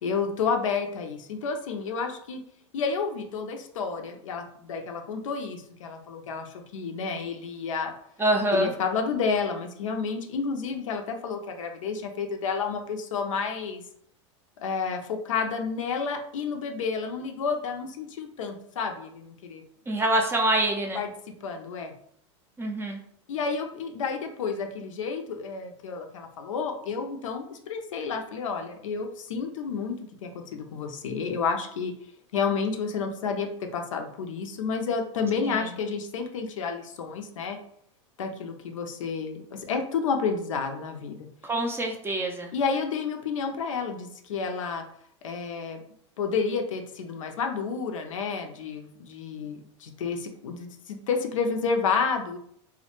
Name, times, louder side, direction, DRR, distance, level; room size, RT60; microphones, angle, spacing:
voice 1, 0.0-2.4 2.7-7.9 8.5-13.8 14.6-19.6 20.0-20.1 20.9-21.1 21.4-21.9 23.3-30.0 30.2-31.9 32.3-37.6 38.2-41.3 42.5-44.9 45.2-45.8 46.2-52.4, left 5 dB, 85° left, 4 dB, 0.4 m, -30 dB
voice 2, 8.2-8.7 19.9-21.0 22.6-23.0 35.4-35.7 41.4-42.5, right 1 dB, 15° right, 2 dB, 0.3 m, -25 dB
2.1 x 2.1 x 2.9 m, 0.66 s
hypercardioid pair, 105°, 16 cm